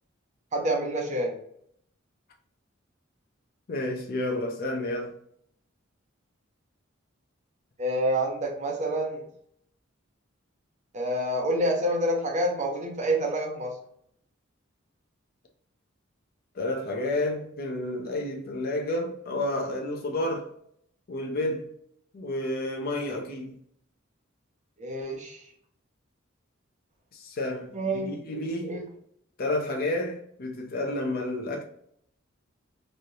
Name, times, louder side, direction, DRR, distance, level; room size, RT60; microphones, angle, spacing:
voice 1, 0.5-1.4 7.8-9.2 10.9-13.8 24.8-25.5 27.7-28.2 28.6-28.9, right 1 dB, 35° right, 0.7 m, -28 dB
voice 2, 3.7-5.1 16.5-20.5 21.1-21.7 22.1-23.6 27.1-28.8 29.4-31.6, left 1 dB, 50° left, 0.5 m, -30 dB
3.1 x 2.7 x 2.7 m
head